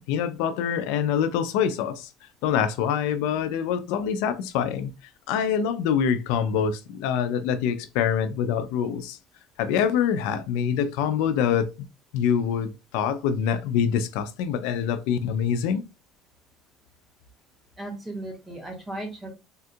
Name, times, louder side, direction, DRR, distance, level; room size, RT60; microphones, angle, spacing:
voice 1, 0.0-2.1 2.4-4.9 5.3-9.2 9.6-11.9 12.1-15.8, left 8 dB, 80° left, 0.4 m, -25 dB
voice 2, 17.8-19.3, right 1 dB, 5° right, 1.0 m, -36 dB
3.5 x 2.3 x 2.6 m
cardioid pair, 155°, 0 cm